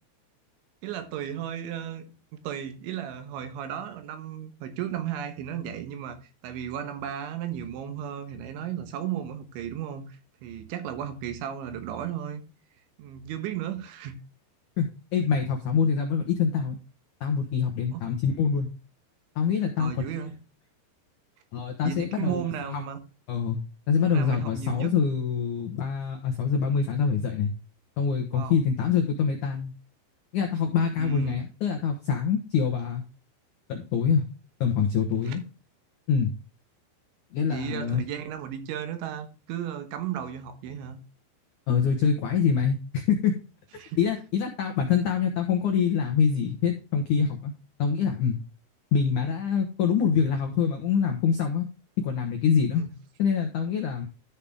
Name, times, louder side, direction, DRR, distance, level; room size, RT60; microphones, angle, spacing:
voice 1, 0.8-2.1 2.4-6.2 6.4-12.4 13.0-14.2 17.9-18.1 19.8-20.3 21.8-23.0 24.0-24.9 28.3-28.5 31.0-31.4 35.3-35.4 37.4-41.0 43.8-44.0 52.8-52.9, right 9 dB, 80° right, 3.6 m, -34 dB
voice 2, 14.8-16.8 17.2-18.7 19.4-19.9 21.5-22.4 22.7-22.8 23.3-23.6 23.9-27.5 28.0-29.7 30.3-33.0 33.7-34.2 34.6-35.4 36.1-36.3 37.3-38.0 41.7-43.3 44.0-47.5 47.8-48.4 48.9-51.7 52.0-52.8 53.2-54.1, left 6 dB, 80° left, 1.7 m, -25 dB
12.5 x 5.7 x 3.5 m
omnidirectional pair, 5.3 m